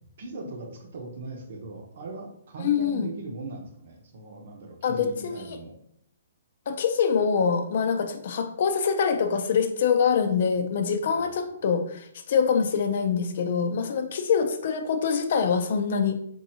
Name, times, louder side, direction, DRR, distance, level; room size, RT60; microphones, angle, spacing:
voice 1, 0.0-5.8 11.1-11.6, right 3 dB, 60° right, 2 dB, 0.9 m, -40 dB
voice 2, 2.6-3.1 4.8-5.4 6.7-16.1, left 6 dB, 55° left, 7 dB, 0.5 m, -24 dB
4.4 x 2.7 x 2.8 m, 0.69 s
hypercardioid pair, 145°, 0 cm